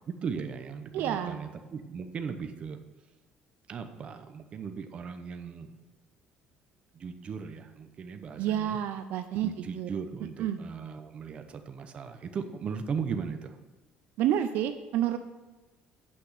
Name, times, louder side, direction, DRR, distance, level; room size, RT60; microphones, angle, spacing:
voice 1, 0.1-2.8 3.7-5.7 6.9-8.8 9.3-13.6, right 6 dB, 35° right, 7 dB, 0.8 m, -37 dB
voice 2, 0.9-1.4 8.4-9.9 10.4-10.6 14.2-15.2, right 11 dB, 65° right, 9 dB, 0.5 m, -29 dB
8.7 x 6.1 x 6.8 m, 1.2 s
cardioid pair, 150°, 3 cm